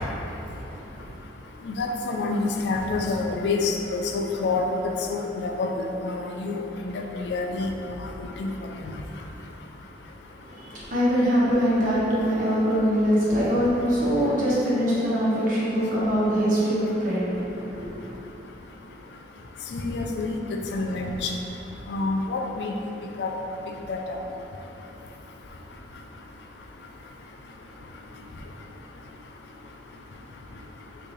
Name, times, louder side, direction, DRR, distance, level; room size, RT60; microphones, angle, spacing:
voice 1, 0.3-1.1 10.4-18.2, equal, 50° right, -8 dB, 1.0 m, -24 dB
voice 2, 1.7-4.6 5.1-5.7 6.0-6.9 7.2-7.7 8.2-8.5 19.7-21.3 21.9-22.7 23.2-23.3 23.9-24.2, left 3 dB, 65° left, 2 dB, 0.3 m, -27 dB
3.2 x 2.6 x 3.8 m, 2.9 s
head